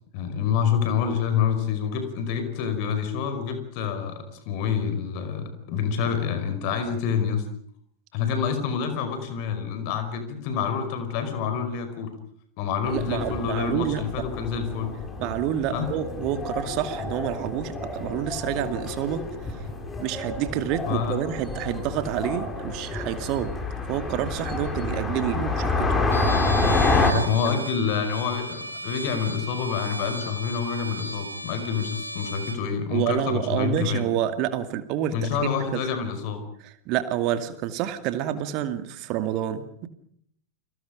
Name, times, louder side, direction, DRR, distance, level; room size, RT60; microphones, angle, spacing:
voice 1, 0.1-7.4 8.1-12.1 12.6-14.9 15.7-15.9 20.9-21.2 27.1-34.0 35.1-36.4, left 7 dB, 45° left, 8 dB, 5.3 m, -27 dB
sound 1, 12.8-27.1, left 3 dB, 15° left, 4.7 m, -28 dB
voice 2, 12.8-14.2 15.2-19.2 20.0-23.5 23.9-25.9 27.1-27.7 32.9-35.2 35.4-35.8 36.6-39.9, right 11 dB, 40° right, 10 dB, 2.3 m, -28 dB
Trumpet, 26.1-32.6, right 1 dB, 90° right, 2.7 m, -36 dB
29.5 x 23.5 x 5.2 m, 0.67 s
figure-of-eight pair, 90°, 0 cm